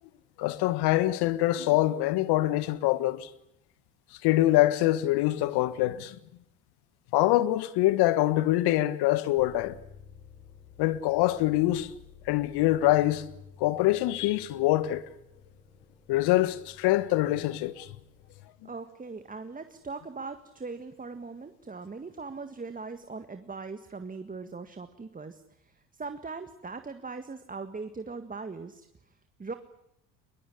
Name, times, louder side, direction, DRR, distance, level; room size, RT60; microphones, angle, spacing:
voice 1, 0.4-3.3 4.2-6.2 7.1-9.8 10.8-11.9 12.3-13.3 13.6-15.0 16.1-17.9, left 16 dB, 65° left, 1.6 m, -24 dB
sound 1, 9.4-18.3, left 6 dB, 20° left, 7.8 m, -54 dB
voice 2, 18.6-29.5, right 4 dB, 20° right, 1.8 m, -40 dB
22.0 x 21.5 x 9.9 m
hypercardioid pair, 65°, 42 cm